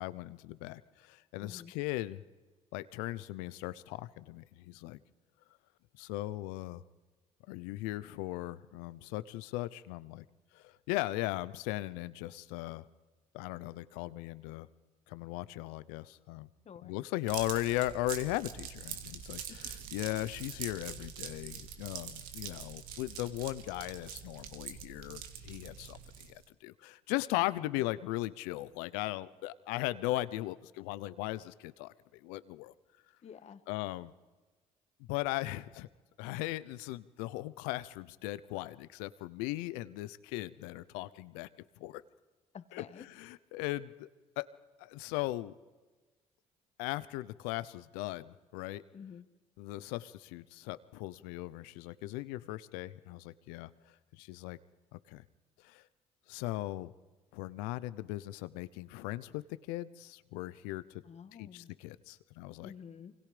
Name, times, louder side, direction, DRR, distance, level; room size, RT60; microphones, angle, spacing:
voice 1, 0.0-2.2 2.7-5.0 6.0-6.8 7.5-10.2 10.5-12.9 13.3-14.7 15.1-16.5 16.8-31.9 32.2-32.7 33.7-34.1 35.1-35.9 36.2-41.5 41.8-42.0 42.7-44.1 44.4-44.5 44.8-45.5 46.8-48.8 49.6-53.7 54.1-54.6 54.9-55.2 55.6-55.8 56.3-56.9 57.3-60.8 61.4-62.7, left 17 dB, 85° left, 16 dB, 0.8 m, -38 dB
voice 2, 1.4-1.7 16.6-16.9 27.5-27.8 33.2-33.6 42.5-43.0 48.9-49.2 61.0-61.7 62.6-63.1, left 7 dB, 50° left, 10 dB, 1.7 m, -50 dB
sound 1, 17.3-26.4, right 9 dB, 80° right, 1.9 m, -44 dB
27.5 x 24.5 x 5.1 m, 1.3 s
supercardioid pair, 70°, 15 cm